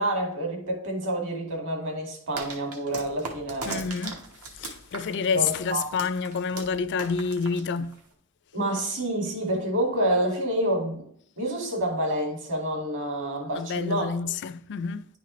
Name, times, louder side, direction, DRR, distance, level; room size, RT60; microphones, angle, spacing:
voice 1, 0.0-3.9 5.3-5.8 8.5-11.0 11.4-14.1, right 1 dB, 60° right, 2.1 m, -28 dB
sound 1, 2.4-8.1, right 3 dB, 85° right, 1.3 m, -39 dB
voice 2, 3.6-4.2 4.5-7.9 13.5-15.1, left 5 dB, 55° left, 0.4 m, -28 dB
10.0 x 4.1 x 3.1 m
head